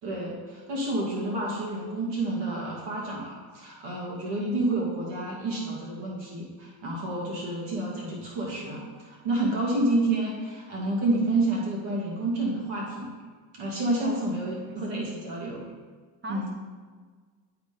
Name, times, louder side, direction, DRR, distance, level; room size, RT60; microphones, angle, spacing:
voice 1, 0.0-13.1 13.5-15.6 16.3-16.5, right 2 dB, 75° right, -3 dB, 2.5 m, -29 dB
voice 2, 14.5-15.2 16.2-16.5, right 1 dB, 25° right, 3 dB, 1.1 m, -41 dB
11.0 x 4.0 x 5.3 m, 1.5 s
cardioid pair, 140°, 41 cm